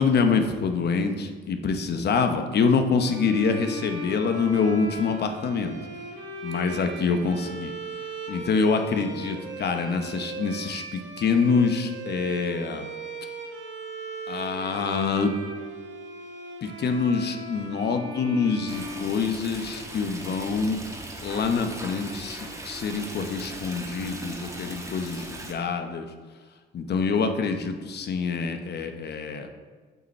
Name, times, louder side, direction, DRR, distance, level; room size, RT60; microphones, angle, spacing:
voice 1, 0.0-5.8 6.4-7.7 8.3-12.9 14.3-15.3 16.6-20.8 21.2-26.1 26.7-29.5, left 5 dB, 55° left, 6 dB, 0.8 m, -26 dB
sound 1, 2.9-19.8, right 2 dB, 70° right, 1.5 m, -38 dB
Stream, 18.7-25.5, right 1 dB, 15° right, 1.2 m, -39 dB
7.8 x 5.3 x 4.2 m, 1.5 s
cardioid pair, 90°, 20 cm